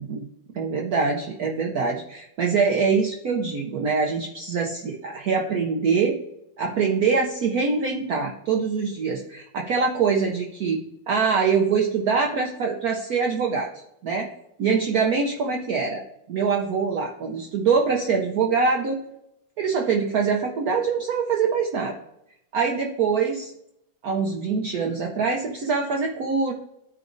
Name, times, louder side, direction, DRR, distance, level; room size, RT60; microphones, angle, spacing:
voice 1, 0.5-6.2 6.6-10.8 11.1-13.7 14.0-14.3 14.6-19.0 19.6-22.0 22.5-23.5 24.0-26.5, right 5 dB, 60° right, 2 dB, 1.0 m, -24 dB
12.5 x 4.8 x 2.6 m, 0.80 s
omnidirectional pair, 2.1 m